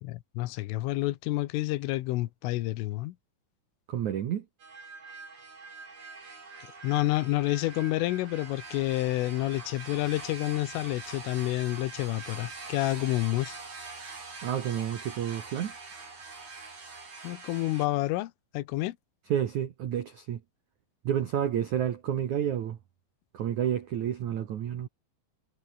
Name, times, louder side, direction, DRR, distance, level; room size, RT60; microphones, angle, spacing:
voice 1, 0.0-3.2 6.8-13.6 17.2-19.0, left 18 dB, 80° left, 3.5 m, -29 dB
voice 2, 3.9-4.4 14.4-15.7 19.3-20.4 21.0-22.8 23.3-24.9, right 10 dB, 75° right, 1.7 m, -30 dB
sound 1, 4.6-17.9, right 4 dB, 35° right, 7.5 m, -44 dB
omnidirectional pair, 5.8 m